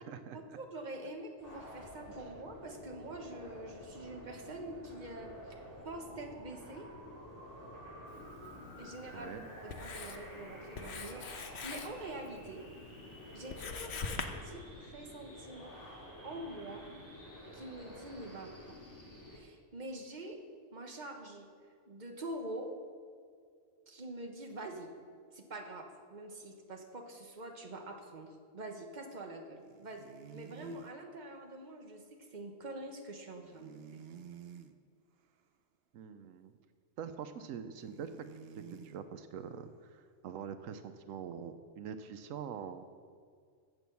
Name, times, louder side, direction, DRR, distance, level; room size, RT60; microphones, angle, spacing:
voice 1, 0.0-0.6 9.1-9.5 35.9-36.5 37.0-38.3 38.7-42.9, right 7 dB, 90° right, 10 dB, 1.0 m, -44 dB
voice 2, 0.5-6.9 8.8-9.3 9.6-12.7 13.3-15.8 16.2-16.9 17.5-18.8 19.3-20.4 20.7-21.5 21.9-22.8 23.9-25.0 25.3-30.0 30.3-34.0, right 1 dB, 35° right, 3 dB, 1.3 m, -45 dB
sound 1, 1.4-19.4, equal, 15° left, 3.0 m, -50 dB
Writing, 8.1-14.3, left 5 dB, 60° left, 1.1 m, -45 dB
sound 2, 29.6-31.0 33.4-34.8 37.7-39.0, right 8 dB, 60° right, 0.8 m, -51 dB
16.0 x 6.2 x 6.9 m, 2.1 s
omnidirectional pair, 1.3 m